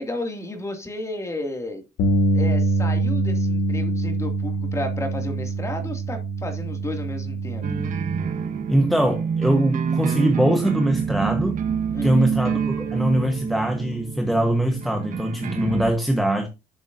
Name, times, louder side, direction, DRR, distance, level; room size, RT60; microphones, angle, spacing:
voice 1, 0.0-1.8 2.3-7.7 11.9-12.4, left 1 dB, 15° left, 2.5 m, -32 dB
Bass guitar, 2.0-8.2, right 2 dB, 85° left, 1.7 m, -24 dB
sound 1, 7.6-15.9, right 6 dB, 50° right, 1.5 m, -26 dB
voice 2, 8.7-11.6 12.0-16.5, right 1 dB, ahead, 1.3 m, -22 dB
11.5 x 7.0 x 2.7 m
cardioid pair, 110°, 17 cm